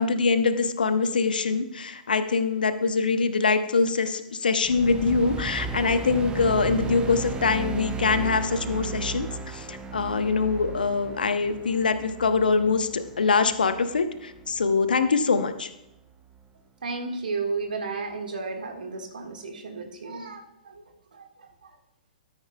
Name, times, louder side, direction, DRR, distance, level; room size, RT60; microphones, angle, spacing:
voice 1, 0.0-15.7, left 4 dB, 75° left, 10 dB, 0.8 m, -24 dB
sound 1, 4.6-15.1, right 6 dB, 15° right, 0.6 m, -35 dB
voice 2, 16.8-20.8 21.1-21.2 21.6-21.7, right 4 dB, 70° right, 3 dB, 1.6 m, -33 dB
13.0 x 9.7 x 2.2 m, 0.87 s
figure-of-eight pair, 110°, 5 cm